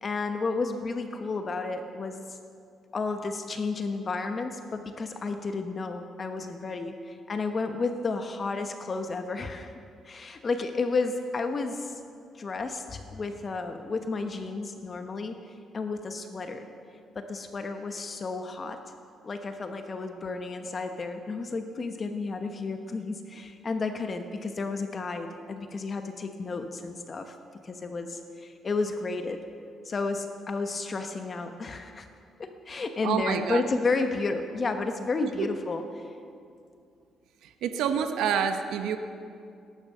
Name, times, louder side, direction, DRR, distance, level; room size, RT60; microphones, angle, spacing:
voice 1, 0.0-2.4 2.9-9.7 10.0-12.0 12.3-15.4 15.7-16.7 17.1-18.8 19.2-27.3 27.6-29.4 29.8-32.1 32.4-36.1, left 3 dB, 40° left, 6 dB, 1.1 m, -32 dB
voice 2, 33.0-33.6 35.4-35.5 37.6-39.0, right 8 dB, 85° right, 7 dB, 1.0 m, -27 dB
18.5 x 11.0 x 6.6 m, 2.4 s
cardioid pair, 90°, 0 cm